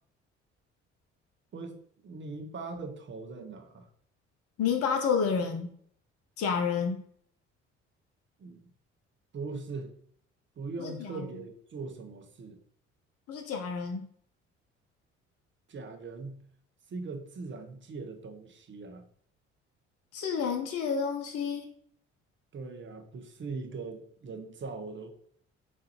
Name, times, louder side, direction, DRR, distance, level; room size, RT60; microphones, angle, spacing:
voice 1, 1.5-3.8 8.4-8.6 9.3-9.9 10.6-12.6 15.7-16.4 16.9-19.1 22.5-25.1, right 3 dB, 35° right, 5 dB, 0.8 m, -40 dB
voice 2, 4.6-5.7 6.4-7.0 10.8-11.3 13.3-14.1 20.1-21.7, left 6 dB, 45° left, 5 dB, 0.7 m, -30 dB
7.1 x 2.6 x 2.8 m, 0.62 s
figure-of-eight pair, 50°, 35 cm